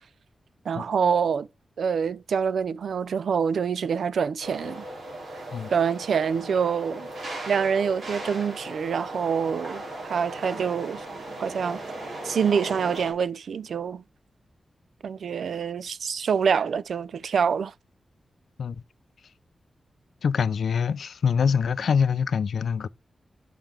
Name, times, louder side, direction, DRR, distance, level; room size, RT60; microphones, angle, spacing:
voice 1, 0.7-1.5 1.8-4.8 5.7-7.1 7.5-11.0 11.4-11.8 12.2-14.0 15.0-17.7, right 6 dB, 85° right, 0.3 m, -26 dB
sound 1, 4.4-13.1, right 1 dB, 60° right, 2.7 m, -37 dB
voice 2, 20.2-22.9, left 6 dB, 80° left, 0.3 m, -24 dB
5.9 x 5.5 x 3.3 m
wide cardioid pair, 140°, 0 cm